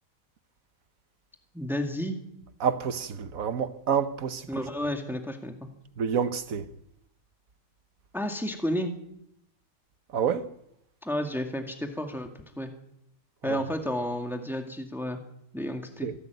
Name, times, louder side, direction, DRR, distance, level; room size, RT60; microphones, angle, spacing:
voice 1, 1.5-2.2 4.5-5.7 8.1-9.0 11.0-12.7 13.4-15.2 15.5-16.1, equal, ahead, 2.0 m, -31 dB
voice 2, 2.6-4.5 6.0-6.7 10.1-10.5 13.4-13.6 16.0-16.1, right 7 dB, 70° right, 1.5 m, -28 dB
25.5 x 12.0 x 9.3 m
omnidirectional pair, 1.5 m